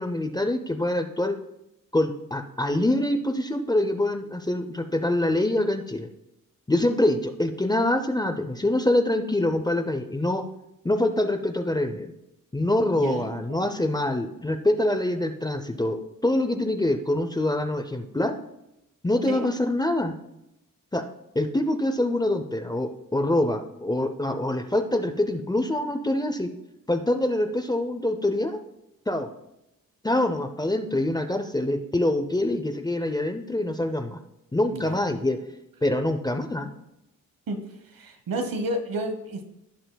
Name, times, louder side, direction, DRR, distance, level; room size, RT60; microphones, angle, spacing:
voice 1, 0.0-1.3 1.9-6.1 6.7-10.4 10.8-12.1 12.5-18.3 19.0-20.1 20.9-21.0 21.4-26.5 26.9-28.6 29.1-29.3 30.0-34.2 34.5-35.4 35.8-36.7, left 1 dB, 10° left, 7 dB, 0.5 m, -25 dB
voice 2, 12.9-13.6 19.3-19.4 34.7-34.9 37.5-37.6 37.9-39.4, right 1 dB, 85° right, 6 dB, 1.2 m, -31 dB
16.5 x 5.7 x 2.2 m, 0.87 s
wide cardioid pair, 165°, 34 cm